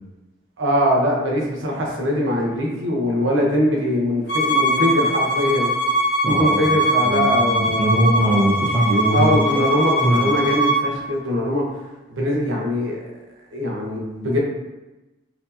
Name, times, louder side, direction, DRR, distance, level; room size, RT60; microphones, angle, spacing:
voice 1, 0.6-5.7 6.3-7.9 9.1-11.7 12.1-13.0 13.5-14.4, left 1 dB, 85° right, -2 dB, 0.9 m, -22 dB
Bowed string instrument, 4.3-10.8, right 1 dB, 55° left, 0.8 m, -21 dB
voice 2, 6.2-6.8 7.0-9.4 10.0-10.3, right 1 dB, 30° right, -4 dB, 0.5 m, -21 dB
4.3 x 2.8 x 2.7 m, 1.1 s
head